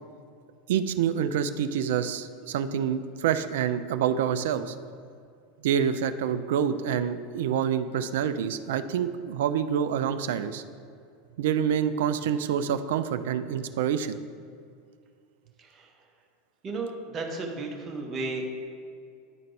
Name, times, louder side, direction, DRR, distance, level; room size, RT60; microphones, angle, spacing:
voice 1, 0.7-4.8 5.6-10.6 11.4-14.2, right 8 dB, 65° right, 11 dB, 0.3 m, -27 dB
voice 2, 15.6-15.9 16.6-18.5, right 3 dB, 30° right, 1 dB, 1.1 m, -34 dB
10.0 x 4.0 x 3.2 m, 2.3 s
figure-of-eight pair, 80°, 0 cm